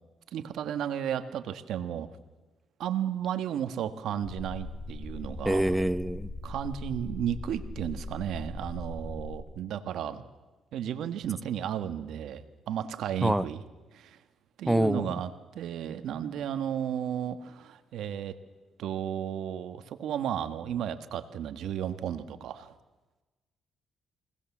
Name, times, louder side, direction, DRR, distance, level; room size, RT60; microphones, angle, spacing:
voice 1, 0.3-2.1 2.8-5.7 6.4-10.2 10.7-13.6 13.9-14.2 14.6-18.4 18.8-22.7, right 9 dB, 75° right, 10 dB, 1.5 m, -33 dB
sound 1, 4.2-9.4, left 2 dB, 35° left, 2.5 m, -40 dB
voice 2, 5.5-6.3 13.2-13.5 14.7-15.1, right 1 dB, 5° right, 13 dB, 0.7 m, -25 dB
24.0 x 18.5 x 7.3 m, 1.2 s
cardioid pair, 90°, 0 cm